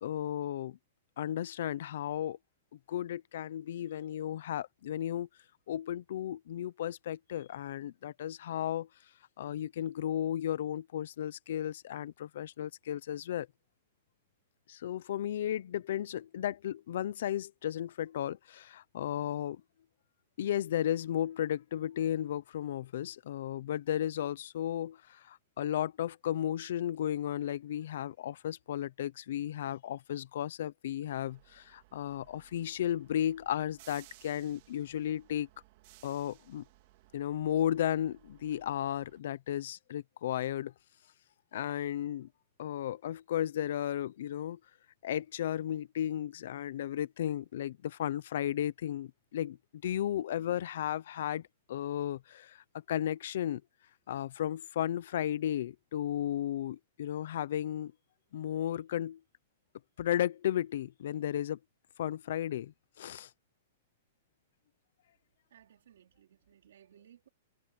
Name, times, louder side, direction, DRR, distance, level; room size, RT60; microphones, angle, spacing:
voice 1, 0.0-0.8 1.2-2.4 2.9-5.3 5.7-8.9 9.4-13.5 14.7-19.6 20.4-35.5 36.0-36.6 37.1-40.7 41.5-42.3 42.6-44.6 45.0-49.6 49.8-53.6 54.1-57.9 58.3-59.2 60.0-61.6 62.0-63.3, left 11 dB, 65° left, 0.8 m, -34 dB
sound 1, 31.0-39.2, right 19 dB, 45° right, 2.7 m, -60 dB
voice 2, 65.5-67.3, right 10 dB, 75° right, 4.0 m, -60 dB
hypercardioid pair, 165°, 0 cm